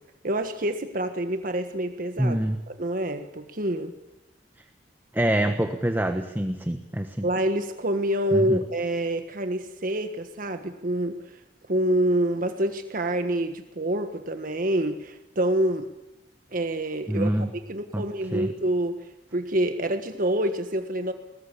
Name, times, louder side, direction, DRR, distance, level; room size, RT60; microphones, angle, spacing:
voice 1, 0.2-2.4 2.7-3.9 7.2-11.4 11.7-15.9 16.5-17.3 17.7-19.0 19.3-21.1, right 1 dB, 50° right, 7 dB, 1.5 m, -27 dB
voice 2, 2.2-2.6 5.1-7.3 8.3-8.6 17.1-17.5 17.9-18.5, right 1 dB, 10° right, 7 dB, 1.2 m, -26 dB
22.5 x 19.5 x 8.5 m, 0.99 s
head